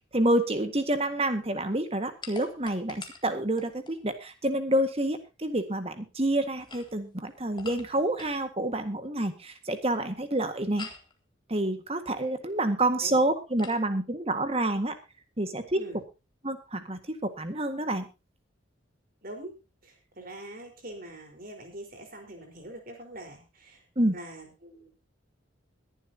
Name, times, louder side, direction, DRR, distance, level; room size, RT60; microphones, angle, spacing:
voice 1, 0.1-10.9 11.5-14.9 15.4-15.8 16.4-18.1 23.9-24.1, right 1 dB, 30° right, 8 dB, 1.7 m, -28 dB
sound 1, 2.2-4.0 6.5-8.4 10.8-11.1 13.6-13.8, left 4 dB, 20° left, 1.9 m, -45 dB
voice 2, 19.2-19.5 19.8-23.8 24.1-24.9, right 1 dB, 45° right, 3 dB, 4.5 m, -43 dB
21.5 x 11.0 x 2.8 m, 0.28 s
head